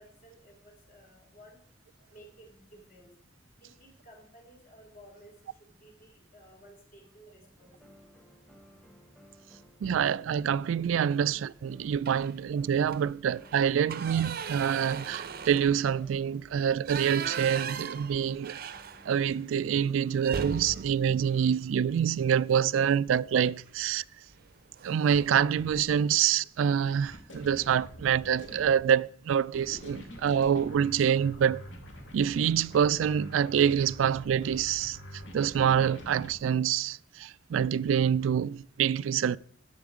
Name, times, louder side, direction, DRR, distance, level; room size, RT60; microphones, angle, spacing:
voice 1, 0.0-1.6 2.1-3.1 3.6-8.1 19.8-20.1 20.5-20.8 21.2-21.5 33.9-34.0, equal, 45° left, 3.3 m, -56 dB
sound 1, 7.6-19.2, equal, 5° left, 1.3 m, -58 dB
voice 2, 9.8-18.6 19.1-24.0 24.8-31.6 32.1-35.0 35.3-39.4, right 8 dB, 90° right, 0.3 m, -26 dB
sound 2, 12.0-12.4 12.8-13.0 13.3-19.4 19.7-19.8 20.2-22.3 23.7-23.9 24.3-24.5 24.8-25.4, right 6 dB, 50° right, 0.6 m, -39 dB
sound 3, 25.5-25.8 27.0-28.8 29.5-36.3, equal, 75° left, 2.3 m, -46 dB
10.5 x 8.0 x 4.9 m
head